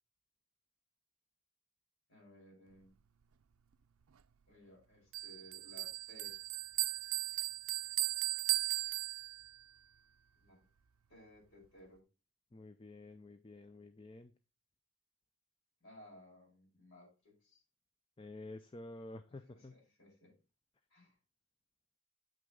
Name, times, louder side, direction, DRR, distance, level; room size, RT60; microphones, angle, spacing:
voice 1, 2.1-2.9 4.5-6.4 10.4-10.6 11.1-12.0 15.8-17.6 19.5-20.3 20.9-21.2, left 1 dB, 60° left, -2 dB, 5.5 m, -59 dB
Bell, 5.1-9.6, right 18 dB, 80° right, 0.4 m, -37 dB
voice 2, 12.5-14.3 18.2-19.7, left 2 dB, 25° left, 10 dB, 0.4 m, -50 dB
8.8 x 6.1 x 3.8 m, 0.33 s
head